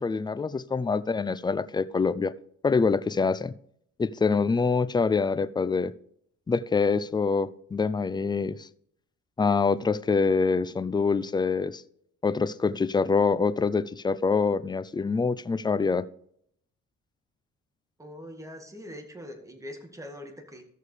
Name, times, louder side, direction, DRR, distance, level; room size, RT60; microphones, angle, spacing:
voice 1, 0.0-2.3 2.6-3.5 4.0-5.9 6.5-8.7 9.4-11.8 12.2-16.1, left 4 dB, 15° left, 0.4 m, -25 dB
voice 2, 18.0-20.6, equal, 10° right, 1.8 m, -42 dB
14.5 x 6.5 x 3.3 m
cardioid pair, 90°, 30 cm